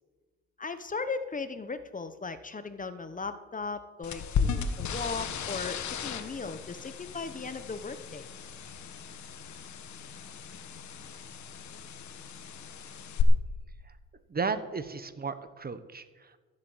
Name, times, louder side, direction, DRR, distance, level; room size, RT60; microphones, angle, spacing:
voice 1, 0.6-8.3, left 4 dB, 25° left, 11 dB, 1.0 m, -37 dB
sound 1, 4.0-13.2, left 7 dB, 70° left, 1.4 m, -36 dB
voice 2, 14.3-16.4, right 5 dB, 30° right, 12 dB, 1.2 m, -34 dB
14.0 x 8.4 x 8.0 m, 1.4 s
cardioid pair, 90°, 30 cm